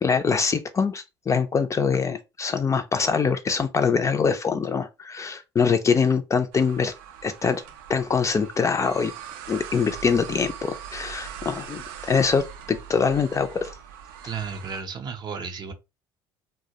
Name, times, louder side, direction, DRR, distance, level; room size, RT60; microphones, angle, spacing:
voice 1, 0.0-6.9 7.2-7.6 7.9-9.1 9.5-13.7, left 5 dB, 30° left, 0.4 m, -24 dB
sound 1, 6.5-14.8, right 9 dB, 85° right, 0.4 m, -41 dB
voice 2, 14.2-15.7, right 6 dB, 40° right, 0.6 m, -33 dB
2.2 x 2.1 x 2.7 m
supercardioid pair, 75°, 11 cm